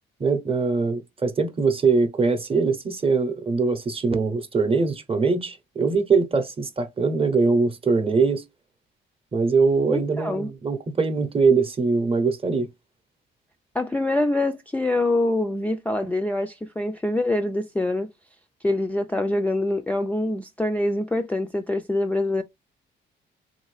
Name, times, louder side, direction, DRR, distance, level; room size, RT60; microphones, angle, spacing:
voice 1, 0.2-8.4 9.3-12.7, right 4 dB, 30° right, 0.7 m, -22 dB
voice 2, 9.9-10.5 13.7-18.1 18.6-22.4, left 1 dB, 5° left, 0.3 m, -25 dB
3.2 x 2.6 x 3.1 m
cardioid pair, 90°, 20 cm